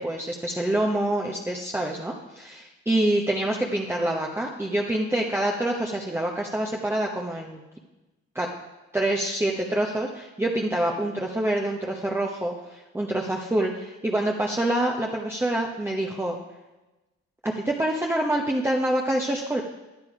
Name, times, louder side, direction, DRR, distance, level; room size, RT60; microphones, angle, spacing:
voice 1, 0.0-7.6 8.3-8.5 8.9-16.4 17.4-19.6, right 1 dB, 10° right, 0 dB, 0.9 m, -26 dB
10.5 x 8.2 x 4.9 m, 1.1 s
cardioid pair, 90°, 30 cm